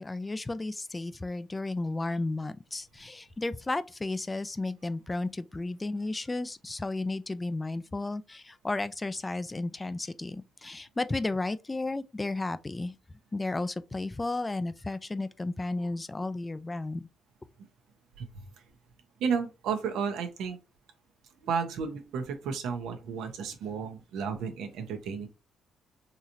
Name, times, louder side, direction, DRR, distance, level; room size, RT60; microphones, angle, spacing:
voice 1, 0.0-13.0 13.3-17.1, left 2 dB, 20° left, 0.4 m, -33 dB
voice 2, 19.2-20.6 21.4-25.3, right 6 dB, 85° right, 0.9 m, -32 dB
3.9 x 3.0 x 2.6 m
cardioid pair, 90°, 0 cm